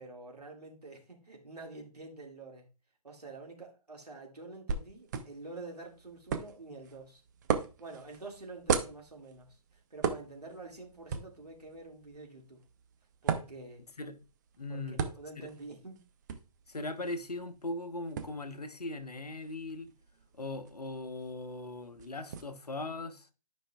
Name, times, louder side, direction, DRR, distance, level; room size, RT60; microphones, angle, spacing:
voice 1, 0.0-2.7 3.0-7.2 7.8-12.6 13.2-13.8 14.7-16.0, right 3 dB, 75° right, 2.2 m, -47 dB
sound 1, 4.7-22.4, right 6 dB, 30° right, 0.7 m, -39 dB
voice 2, 14.6-15.0 15.4-15.5 16.7-19.9 20.3-23.3, left 2 dB, 75° left, 1.0 m, -39 dB
12.5 x 5.2 x 2.3 m
figure-of-eight pair, 135°, 20 cm